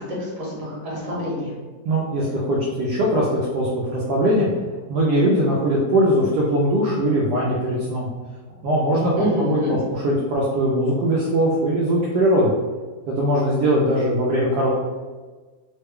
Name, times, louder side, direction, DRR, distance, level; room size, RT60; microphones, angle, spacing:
voice 1, 0.0-1.5 9.2-9.8, equal, 55° right, -5 dB, 1.3 m, -26 dB
voice 2, 1.8-4.5 4.9-8.1 8.6-12.5 13.1-14.7, equal, 75° right, -5 dB, 1.1 m, -20 dB
3.1 x 2.2 x 3.4 m, 1.4 s
omnidirectional pair, 1.8 m